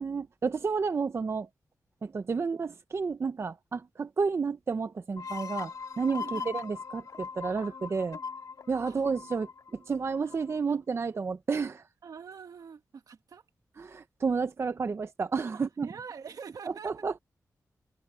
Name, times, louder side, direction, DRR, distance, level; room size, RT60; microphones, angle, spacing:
voice 1, 0.0-1.5 2.0-8.2 8.7-11.8 13.8-15.9 16.8-17.2, right 5 dB, 45° right, 0.6 m, -31 dB
sound 1, 5.2-10.6, left 5 dB, 75° left, 1.9 m, -40 dB
voice 2, 6.2-6.5 7.6-7.8 8.1-8.2 8.8-9.1 10.2-10.4 10.7-10.8 12.0-13.4 15.5-17.2, right 6 dB, 80° right, 1.9 m, -46 dB
wide cardioid pair, 120°, 6 cm